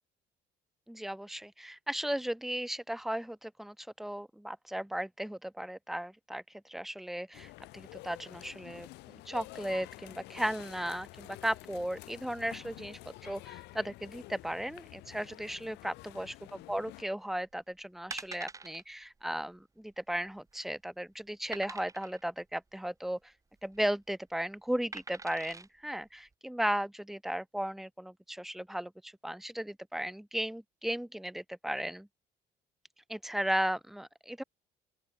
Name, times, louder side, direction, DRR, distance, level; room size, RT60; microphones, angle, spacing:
voice 1, 0.9-23.2 23.6-32.1 33.1-34.4, right 1 dB, ahead, 0.8 m, -36 dB
sound 1, 7.3-17.0, left 20 dB, 90° left, 3.0 m, -49 dB
sound 2, 17.4-17.6 18.1-18.8 19.2-19.3 19.6-19.7 20.3-20.7 21.5-22.2 23.5-23.9 24.9-25.7 26.3-26.4, right 3 dB, 20° right, 1.8 m, -45 dB
open air
cardioid pair, 110°, 17 cm